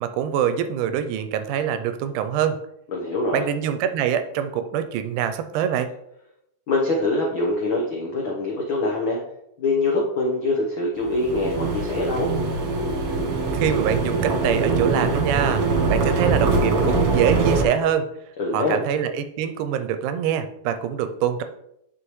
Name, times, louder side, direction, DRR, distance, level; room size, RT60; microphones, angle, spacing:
voice 1, 0.0-2.6 3.3-5.9 13.5-15.6 15.9-18.1 18.5-21.4, right 9 dB, 80° right, 9 dB, 2.0 m, -24 dB
voice 2, 2.9-3.4 6.7-9.2 9.6-12.3 18.4-18.8, left 2 dB, 80° left, -2 dB, 1.1 m, -24 dB
sound 1, 11.1-17.7, right 3 dB, 60° right, 1.9 m, -22 dB
10.0 x 5.1 x 3.1 m, 0.78 s
omnidirectional pair, 3.8 m